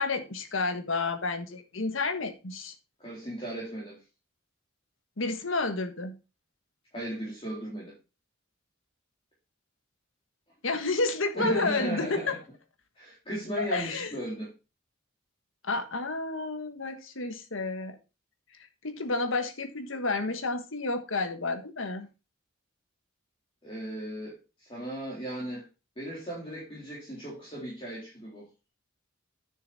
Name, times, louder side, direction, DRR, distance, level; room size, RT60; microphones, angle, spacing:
voice 1, 0.0-2.7 5.2-6.1 10.6-12.4 13.6-14.1 15.6-18.0 18.8-22.1, left 3 dB, 75° left, 1.5 m, -30 dB
voice 2, 3.0-4.0 6.9-7.9 11.3-12.3 13.0-14.5 23.6-25.7 26.0-28.4, right 1 dB, 25° left, 3.8 m, -36 dB
9.7 x 6.8 x 4.1 m
head